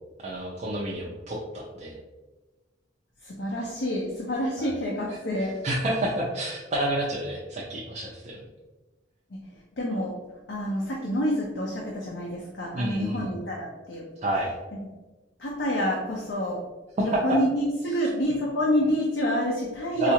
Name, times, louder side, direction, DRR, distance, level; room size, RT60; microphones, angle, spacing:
voice 1, 0.2-2.0 4.6-4.7 5.6-8.4 12.7-13.3 14.2-14.5 17.0-17.2 20.0-20.1, right 1 dB, 40° right, -4 dB, 0.5 m, -29 dB
voice 2, 3.2-5.6 9.3-9.5 9.8-10.2 10.5-14.0 14.7-14.8 15.4-16.6 17.0-20.1, equal, 70° left, -2 dB, 0.6 m, -28 dB
4.2 x 2.4 x 2.8 m, 1.2 s
head